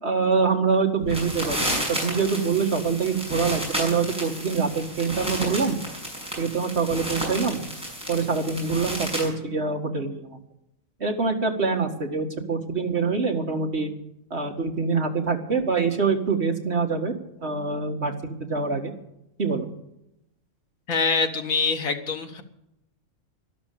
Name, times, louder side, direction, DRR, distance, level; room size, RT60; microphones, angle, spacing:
voice 1, 0.0-5.8 6.4-7.6 8.1-10.4 11.0-13.9 14.3-17.1 17.4-18.1 18.4-18.9 19.4-19.7, right 5 dB, 50° right, 3 dB, 2.2 m, -25 dB
sound 1, 1.0-9.3, equal, 5° right, 6.4 m, -32 dB
voice 2, 20.9-22.4, left 4 dB, 85° left, 5 dB, 2.0 m, -24 dB
12.5 x 12.0 x 8.5 m, 0.83 s
omnidirectional pair, 1.4 m